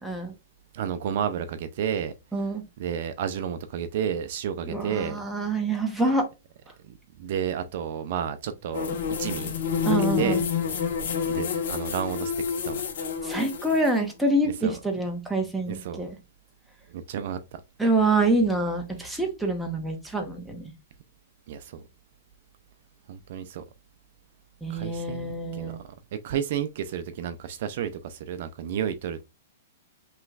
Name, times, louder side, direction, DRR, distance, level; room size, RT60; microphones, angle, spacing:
voice 1, 0.0-0.3 2.3-2.6 4.7-6.2 9.8-10.4 13.2-16.1 17.8-20.7 24.6-25.8, right 2 dB, ahead, 0.9 m, -26 dB
voice 2, 0.7-5.2 6.8-8.9 9.2-9.5 9.9-10.4 11.3-12.3 12.6-12.8 14.4-14.8 15.7-16.0 16.9-17.6 21.5-21.8 23.1-23.6 24.7-25.7 26.2-29.2, right 8 dB, 50° right, 0.4 m, -31 dB
sound 1, 8.7-13.9, left 7 dB, 65° left, 1.4 m, -28 dB
5.6 x 3.1 x 2.4 m
hypercardioid pair, 160°, 0 cm